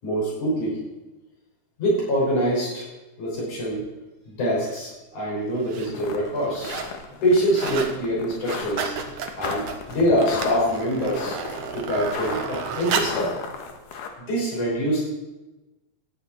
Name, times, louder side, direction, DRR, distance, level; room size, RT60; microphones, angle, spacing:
voice 1, 0.0-0.8 1.8-2.9 3.2-3.8 4.3-6.8 7.1-11.4 11.7-13.5 14.2-15.0, equal, 65° left, -5 dB, 7.5 m, -25 dB
sound 1, 4.7-4.8 5.5-5.9 6.3-7.0 7.3-8.0 8.3-13.3 13.9-14.0, right 6 dB, 70° right, 2.8 m, -32 dB
sound 2, 5.9-6.2 6.5-14.1, left 6 dB, 80° left, 3.0 m, -35 dB
18.5 x 13.0 x 4.5 m, 1.1 s
omnidirectional pair, 3.7 m